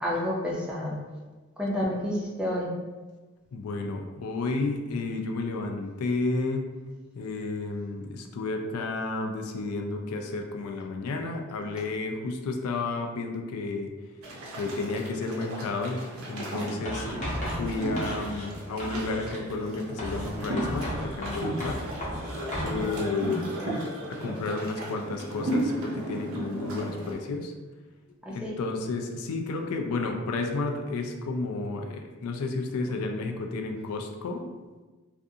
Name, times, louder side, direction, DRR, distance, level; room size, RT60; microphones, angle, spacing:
voice 1, 0.0-1.0 1.6-2.7 22.6-22.9 28.3-28.5 32.9-33.0, left 1 dB, 5° right, -4 dB, 0.4 m, -30 dB
voice 2, 3.5-6.6 7.1-13.9 14.6-16.0 16.3-17.1 17.6-21.8 22.6-23.6 24.1-27.5 28.3-34.5, left 3 dB, 90° left, 3 dB, 0.3 m, -31 dB
sound 1, 14.2-27.1, right 1 dB, 75° right, 0.6 m, -35 dB
Writing, 16.9-18.5 18.8-19.3 20.0-22.8, equal, 35° left, 0.7 m, -34 dB
2.4 x 2.3 x 2.6 m, 1.3 s
head